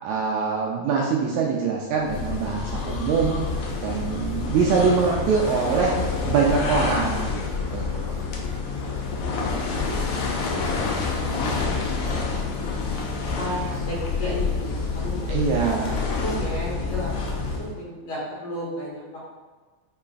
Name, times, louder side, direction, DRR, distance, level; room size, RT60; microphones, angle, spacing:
voice 1, 0.0-3.4 3.8-6.0 6.2-7.4 7.7-8.2 15.3-16.0, right 5 dB, 80° right, -2 dB, 1.6 m, -23 dB
sound 1, 2.0-17.8, left 4 dB, 75° left, 2.0 m, -28 dB
voice 2, 8.8-11.2 11.5-12.7 13.2-19.3, equal, 60° left, -7 dB, 2.2 m, -35 dB
6.6 x 3.1 x 2.3 m, 1.3 s
omnidirectional pair, 3.5 m